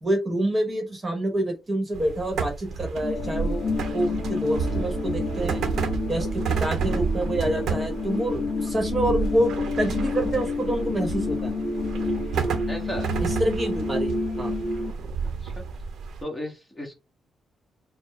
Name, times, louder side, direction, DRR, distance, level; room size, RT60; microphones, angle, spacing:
voice 1, 0.0-5.6 6.1-11.5 13.2-14.5, right 1 dB, 25° right, 1.1 m, -27 dB
sound 1, 1.9-16.2, right 5 dB, 75° right, 0.8 m, -31 dB
sound 2, 3.0-14.9, left 3 dB, 45° left, 1.2 m, -29 dB
voice 2, 12.7-13.1 15.4-15.6 16.2-16.9, left 1 dB, 15° left, 1.3 m, -34 dB
4.3 x 2.0 x 4.2 m
cardioid pair, 125°, 0 cm